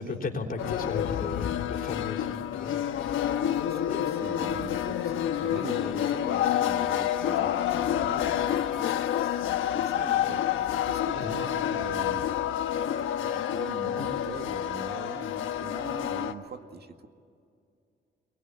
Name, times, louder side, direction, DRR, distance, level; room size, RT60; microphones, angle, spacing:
voice 1, 0.0-2.8 3.2-3.4 3.9-4.0 11.1-11.4 13.3-13.4 14.0-14.1, left 4 dB, 45° left, 2 dB, 3.8 m, -36 dB
sound 1, 0.6-16.3, left 11 dB, 80° left, 1.3 m, -28 dB
voice 2, 3.4-12.4 13.0-17.1, right 5 dB, 55° right, 6 dB, 1.9 m, -43 dB
24.0 x 22.5 x 9.9 m, 2.3 s
cardioid pair, 90°, 20 cm